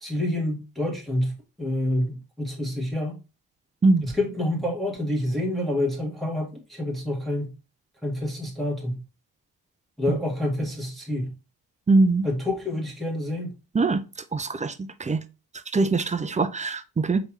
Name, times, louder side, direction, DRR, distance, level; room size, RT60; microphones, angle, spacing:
voice 1, 0.0-3.2 4.0-7.5 8.0-9.0 10.0-11.3 12.2-13.5, left 1 dB, ahead, 1.4 m, -28 dB
voice 2, 11.9-12.2 13.7-14.0 14.3-14.7 15.0-15.2 15.7-17.2, right 3 dB, 15° right, 0.4 m, -22 dB
4.9 x 3.2 x 3.1 m
supercardioid pair, 50°, 49 cm